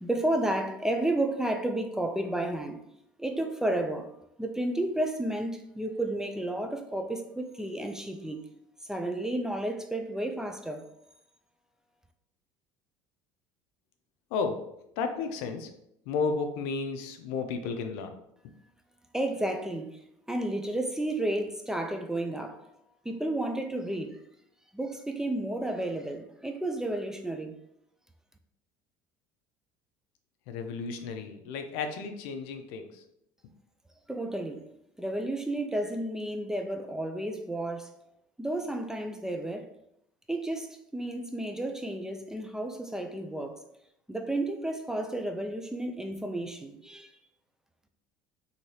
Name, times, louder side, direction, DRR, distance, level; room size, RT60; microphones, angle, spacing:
voice 1, 0.0-2.8 3.2-4.1 4.4-8.4 8.9-10.9 19.1-20.0 20.3-22.6 23.0-24.2 24.7-27.5 34.1-34.6 35.0-37.9 38.4-39.7 40.3-43.6 44.1-47.1, right 1 dB, 5° right, 0.4 m, -32 dB
voice 2, 14.3-14.7 15.0-15.7 16.1-18.1 30.5-33.0, left 4 dB, 75° left, 0.4 m, -33 dB
3.1 x 2.8 x 2.7 m
supercardioid pair, 90°, 10 cm